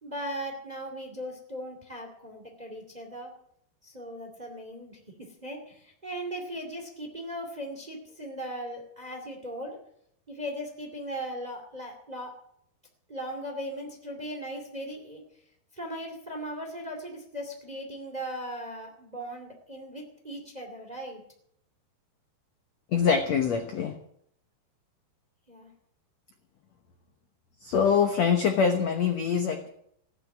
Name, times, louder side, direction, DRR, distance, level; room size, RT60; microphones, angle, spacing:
voice 1, 0.0-3.3 3.8-9.8 10.3-12.3 13.1-15.2 15.7-21.2 25.5-25.7, equal, 15° right, 4 dB, 1.6 m, -38 dB
voice 2, 22.9-24.0 27.6-29.7, left 6 dB, 75° left, 5 dB, 1.5 m, -24 dB
16.5 x 10.0 x 7.4 m, 0.71 s
omnidirectional pair, 4.8 m